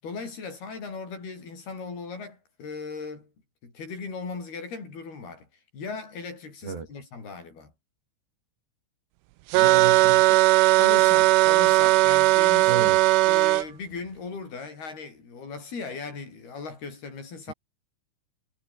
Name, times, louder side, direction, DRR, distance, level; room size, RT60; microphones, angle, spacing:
voice 1, 0.0-3.3 3.6-5.5 5.7-7.7 10.7-12.7 13.3-17.5, left 4 dB, 55° left, 9.6 m, -38 dB
voice 2, 9.5-10.5 12.7-13.0 17.5-17.6, right 5 dB, 60° right, 8.6 m, -33 dB
sound 1, 9.5-13.7, right 20 dB, 85° right, 3.3 m, -18 dB
omnidirectional pair, 5.5 m